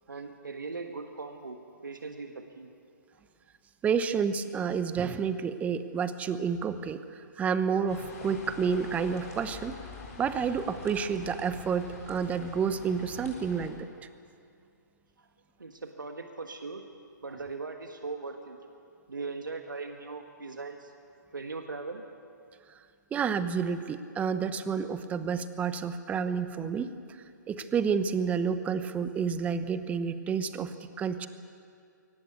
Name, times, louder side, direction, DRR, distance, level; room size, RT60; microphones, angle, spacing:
voice 1, 0.1-2.7 3.1-3.2 15.2-15.3 15.6-16.8 17.2-18.6 19.1-20.9 21.3-22.0, right 4 dB, 85° right, 5 dB, 1.6 m, -39 dB
voice 2, 3.8-9.7 10.2-13.9 23.1-27.2 27.5-31.3, right 6 dB, 15° right, 12 dB, 0.9 m, -30 dB
sound 1, 7.9-13.7, left 4 dB, 45° left, 7.8 m, -45 dB
22.0 x 19.0 x 8.2 m, 2.4 s
figure-of-eight pair, 135°, 10 cm